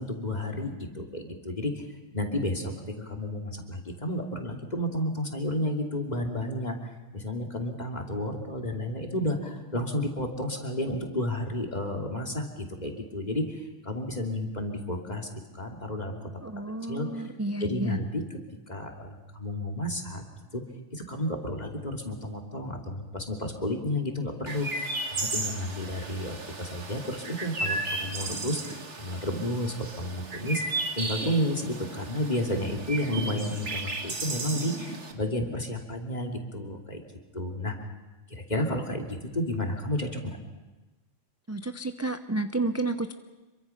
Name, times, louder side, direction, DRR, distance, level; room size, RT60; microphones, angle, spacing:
voice 1, 0.0-1.8 2.1-16.2 16.9-17.3 17.6-18.4 18.7-20.2 20.5-20.6 20.9-24.8 25.2-30.6 30.9-37.0 37.3-37.7 38.3-40.4, left 1 dB, 35° left, 2 dB, 2.8 m, -32 dB
voice 2, 16.4-18.0 41.5-43.1, right 2 dB, 15° right, 8 dB, 0.6 m, -31 dB
Chirp tweet, 24.5-35.1, right 2 dB, 80° right, 2.3 m, -34 dB
27.0 x 23.5 x 5.8 m, 1.2 s
omnidirectional pair, 1.2 m